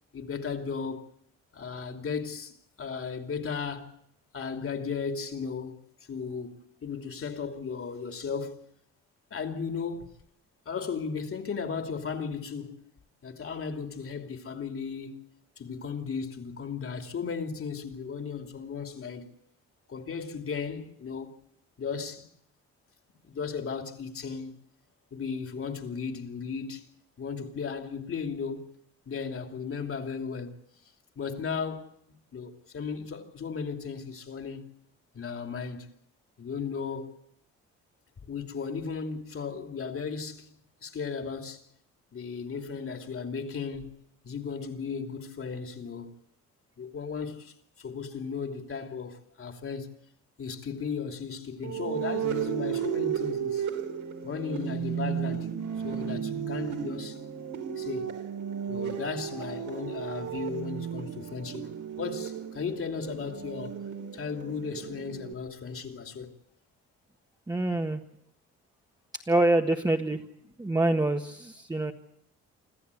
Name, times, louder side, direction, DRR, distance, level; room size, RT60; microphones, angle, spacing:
voice 1, 0.1-1.1 1.5-2.5 2.8-4.0 4.3-5.8 6.1-8.7 9.3-10.1 10.6-12.8 13.2-15.2 15.6-19.3 19.9-21.3 21.8-22.3 23.2-24.5 25.1-26.9 27.2-28.7 29.1-30.6 31.2-31.9 32.3-34.6 35.1-35.9 36.4-37.2 38.3-40.5 40.8-41.6 42.1-44.0 44.2-46.1 46.8-49.9 50.4-53.7 54.2-55.5 55.8-57.2 57.8-58.2 58.7-61.7 62.0-63.8 64.1-66.3, left 5 dB, 45° left, 2.9 m, -35 dB
sound 1, 51.6-65.3, right 8 dB, 70° right, 3.4 m, -34 dB
voice 2, 67.5-68.0 69.3-70.2 70.6-71.9, right 2 dB, 15° right, 1.5 m, -25 dB
26.5 x 14.0 x 8.4 m
cardioid pair, 90°, 30 cm